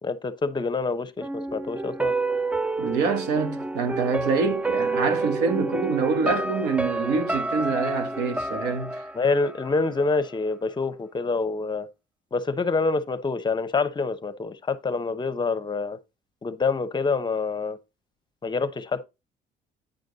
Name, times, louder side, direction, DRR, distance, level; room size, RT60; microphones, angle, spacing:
voice 1, 0.0-2.1 9.1-11.9 12.3-16.0 16.4-17.8 18.4-19.0, left 4 dB, 25° left, 0.8 m, -26 dB
sound 1, 1.2-10.2 10.5-10.6, right 2 dB, 10° right, 0.4 m, -29 dB
voice 2, 2.8-9.0, right 5 dB, 90° right, 1.5 m, -26 dB
9.0 x 5.1 x 4.0 m
cardioid pair, 110°, 17 cm